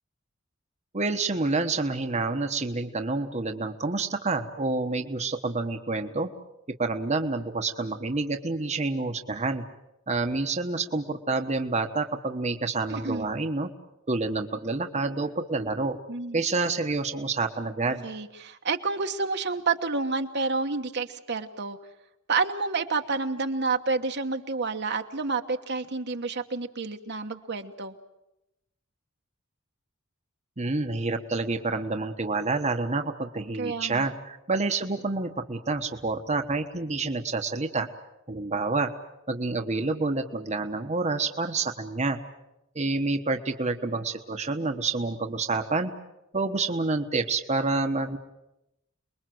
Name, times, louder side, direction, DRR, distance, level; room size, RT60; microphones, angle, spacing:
voice 1, 0.9-6.3 6.8-9.6 10.1-13.7 14.1-16.0 16.3-18.0 30.6-37.9 38.3-38.9 39.3-42.2 42.7-45.9 46.3-48.2, right 3 dB, 35° right, 5 dB, 1.2 m, -28 dB
voice 2, 12.9-13.3 16.1-16.4 18.0-21.8 22.3-28.0 33.6-34.1, right 4 dB, 55° right, 5 dB, 1.3 m, -29 dB
28.5 x 21.5 x 7.8 m, 0.90 s
head